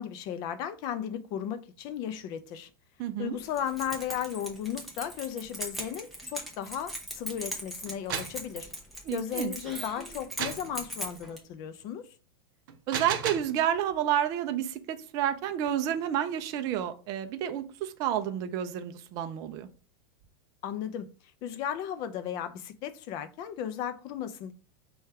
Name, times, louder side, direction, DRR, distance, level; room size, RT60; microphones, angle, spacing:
voice 1, 0.0-2.7 3.2-8.7 9.1-12.0 20.6-21.1 21.4-24.5, left 9 dB, 35° left, 0.4 m, -35 dB
voice 2, 3.0-3.4 9.1-9.5 12.9-19.7, right 10 dB, 30° right, 0.4 m, -30 dB
Keys jangling, 3.5-11.4, equal, ahead, 0.7 m, -40 dB
sound 1, 7.9-8.4 10.4-10.7 12.7-13.6, right 8 dB, 60° right, 0.7 m, -33 dB
4.9 x 2.3 x 4.3 m
supercardioid pair, 165°, 12 cm